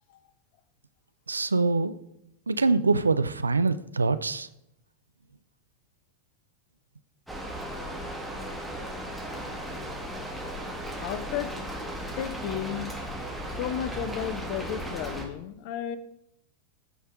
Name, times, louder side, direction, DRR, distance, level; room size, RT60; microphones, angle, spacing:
voice 1, 1.3-1.9 2.5-4.5, right 3 dB, 80° right, 13 dB, 0.4 m, -24 dB
Rain, 7.3-15.3, right 1 dB, ahead, 1.6 m, -36 dB
voice 2, 11.0-11.5 12.2-13.0 13.6-16.0, left 10 dB, 45° left, 14 dB, 0.7 m, -33 dB
14.5 x 5.5 x 3.7 m, 0.78 s
figure-of-eight pair, 90°, 0 cm